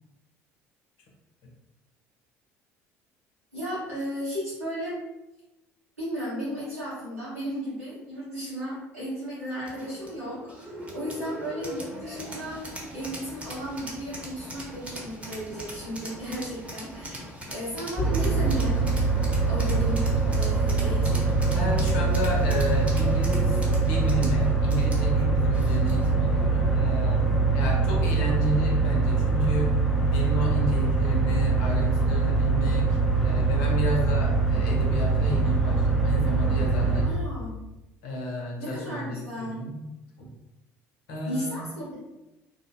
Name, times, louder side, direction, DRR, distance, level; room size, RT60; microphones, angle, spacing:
voice 1, 3.5-4.9 6.0-12.6 12.9-17.3 17.5-18.7 19.5-21.2 37.1-37.5 38.6-39.6 41.3-41.9, equal, 90° right, -13 dB, 1.1 m, -34 dB
sound 1, 9.7-26.2, equal, 15° right, 0.9 m, -41 dB
sound 2, 18.0-37.1, right 4 dB, 5° left, 0.6 m, -23 dB
voice 2, 21.5-27.2 27.5-37.1 38.0-40.3 41.1-41.6, equal, 70° left, -2 dB, 0.7 m, -31 dB
2.6 x 2.1 x 2.6 m, 0.98 s
figure-of-eight pair, 60°, 8 cm